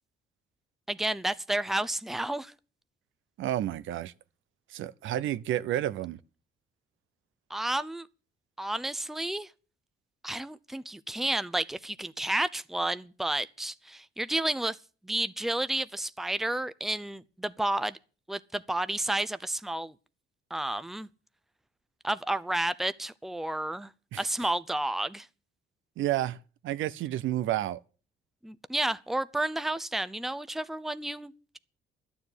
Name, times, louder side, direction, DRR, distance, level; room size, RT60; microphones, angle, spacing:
voice 1, 0.9-2.5 7.5-8.1 8.6-9.5 10.2-14.8 15.0-18.0 18.3-19.9 20.5-21.1 22.0-23.9 24.2-25.3 28.4-31.6, right 1 dB, ahead, 0.6 m, -31 dB
voice 2, 3.4-4.1 4.7-6.2 24.1-24.2 26.0-26.4 26.6-27.8, right 13 dB, 80° right, 0.7 m, -30 dB
11.5 x 7.2 x 9.8 m
cardioid pair, 90°, 20 cm